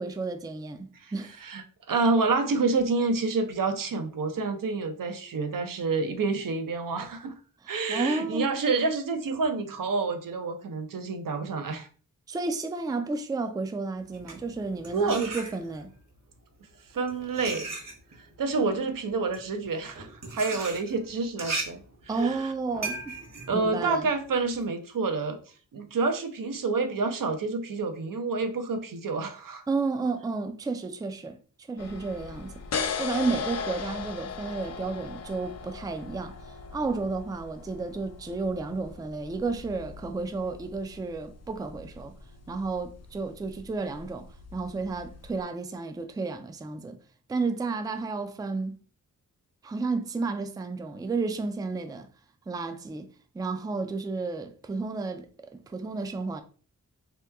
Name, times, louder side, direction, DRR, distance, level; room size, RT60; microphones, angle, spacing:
voice 1, 0.0-1.3 7.9-8.6 12.3-15.9 22.1-23.1 23.5-24.1 29.7-32.5 33.0-42.1 42.5-47.0 47.3-48.8 49.6-52.1 52.5-53.1 53.3-55.3 55.5-56.4, right 3 dB, 10° right, 0.3 m, -32 dB
voice 2, 1.4-7.3 7.7-11.9 14.9-15.3 16.9-17.7 18.4-21.8 22.1-22.5 23.5-25.4 25.7-29.6, right 3 dB, 75° right, 0.6 m, -28 dB
sound 1, 14.0-16.0 16.7-24.6, right 3 dB, 55° right, 1.1 m, -38 dB
sound 2, 31.8-45.4, left 5 dB, 50° left, 0.4 m, -39 dB
2.9 x 2.2 x 3.4 m
wide cardioid pair, 65°, 33 cm